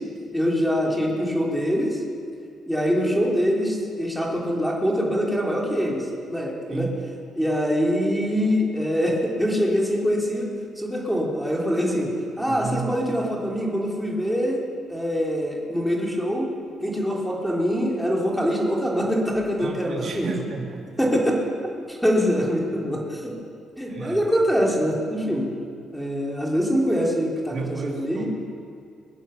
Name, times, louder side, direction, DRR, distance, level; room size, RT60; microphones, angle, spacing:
voice 1, 0.3-2.0 2.7-6.9 7.4-10.5 10.8-16.5 16.8-20.3 21.0-21.4 21.9-23.3 23.8-25.5 25.9-28.3, equal, ahead, -2 dB, 3.7 m, -24 dB
voice 2, 6.7-7.0 12.4-13.0 19.6-20.9 23.9-24.2 27.5-28.3, right 5 dB, 50° right, -2 dB, 2.9 m, -32 dB
22.5 x 8.9 x 7.0 m, 2.3 s
cardioid pair, 90°, 0 cm